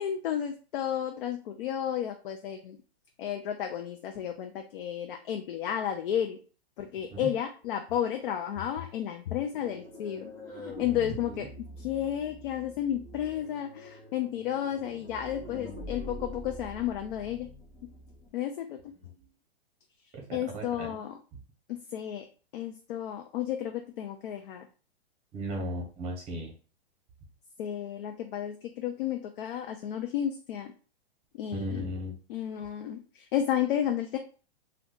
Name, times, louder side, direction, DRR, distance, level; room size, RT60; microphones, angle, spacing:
voice 1, 0.0-2.8 3.2-6.4 6.8-10.3 10.6-11.5 11.8-17.5 18.3-18.9 20.3-21.2 21.7-22.2 22.5-24.7 27.6-30.7 31.3-31.9 32.3-34.2, left 10 dB, 55° left, 4 dB, 0.5 m, -32 dB
voice 2, 7.0-7.3 11.1-11.5 19.0-19.1 20.1-20.2 20.5-21.0 25.3-26.5 31.5-32.1, equal, 20° right, 2 dB, 0.9 m, -36 dB
sound 1, 9.5-18.3, left 1 dB, 5° left, 0.5 m, -44 dB
2.5 x 2.3 x 3.7 m, 0.37 s
hypercardioid pair, 140°, 32 cm